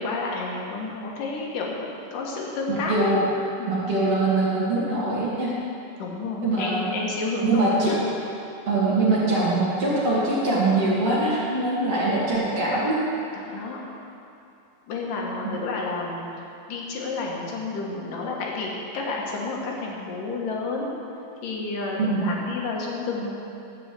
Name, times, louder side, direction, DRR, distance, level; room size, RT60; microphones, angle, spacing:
voice 1, 0.0-3.1 3.6-3.7 6.0-8.0 13.4-13.8 14.9-16.3 16.7-20.9 21.4-23.4, left 3 dB, 65° left, -2 dB, 2.8 m, -30 dB
voice 2, 2.7-3.2 3.7-5.5 6.4-6.9 7.4-7.9 8.7-13.0 22.0-22.3, right 2 dB, 45° right, -8 dB, 2.9 m, -23 dB
13.5 x 4.9 x 8.1 m, 2.8 s
omnidirectional pair, 4.5 m